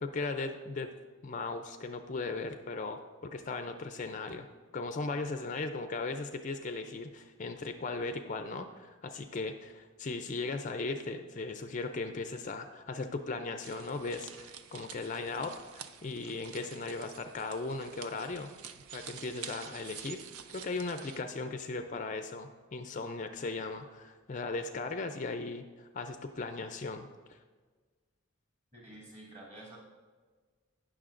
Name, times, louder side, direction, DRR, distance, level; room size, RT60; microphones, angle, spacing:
voice 1, 0.0-0.9 1.2-4.5 4.7-18.5 18.9-20.2 20.5-27.4, left 3 dB, 35° left, 7 dB, 0.4 m, -37 dB
sound 1, 13.6-21.2, right 8 dB, 85° right, 0.5 m, -48 dB
voice 2, 28.7-29.8, right 1 dB, 30° right, -5 dB, 2.5 m, -49 dB
18.5 x 6.3 x 2.5 m, 1.4 s
head